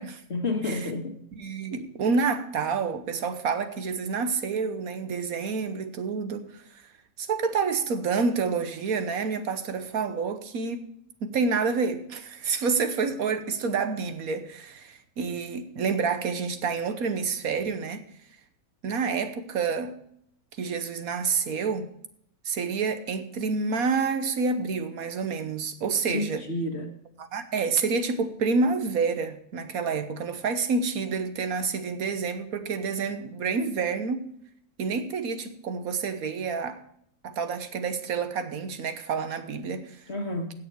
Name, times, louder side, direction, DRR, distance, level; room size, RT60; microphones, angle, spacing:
voice 1, 0.3-1.2 26.1-26.9 40.1-40.5, left 2 dB, 45° left, 1.8 m, -30 dB
voice 2, 1.4-6.6 7.2-10.9 11.2-18.0 18.8-19.9 20.6-21.9 22.4-26.4 27.3-34.3 34.8-36.8 37.2-40.0, right 5 dB, 75° right, 1.5 m, -28 dB
16.5 x 6.9 x 4.6 m
omnidirectional pair, 1.6 m